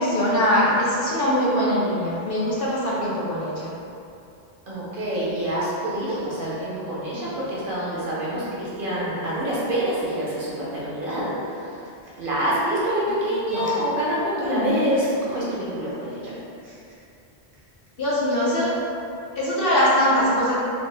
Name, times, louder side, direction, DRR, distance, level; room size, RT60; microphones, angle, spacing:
voice 1, 0.0-3.7 13.5-13.8 14.4-14.7 18.0-18.8 19.3-20.5, equal, 60° left, -7 dB, 0.8 m, -22 dB
voice 2, 4.7-11.8 12.2-16.3 16.6-16.7, equal, 55° right, -8 dB, 0.9 m, -26 dB
3.0 x 2.0 x 3.2 m, 2.6 s
omnidirectional pair, 1.1 m